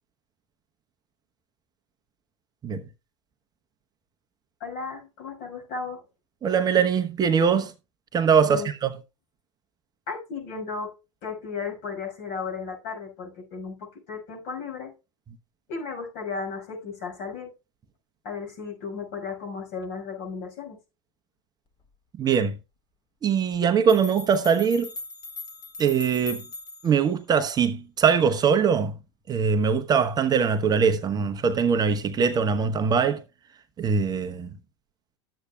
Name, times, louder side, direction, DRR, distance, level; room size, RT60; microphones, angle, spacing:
voice 1, 4.6-6.0 8.4-8.7 10.1-10.9 11.2-14.9 15.7-17.5 18.2-20.8, left 5 dB, 55° left, 5.7 m, -35 dB
voice 2, 6.4-7.7 8.1-8.9 22.2-22.6 23.2-24.9 25.8-26.4 26.8-28.9 29.3-33.2 33.8-34.5, right 6 dB, 25° right, 0.9 m, -22 dB
sound 1, 23.9-27.0, left 2 dB, 30° left, 2.1 m, -40 dB
13.0 x 8.2 x 2.3 m
hypercardioid pair, 95°, 15 cm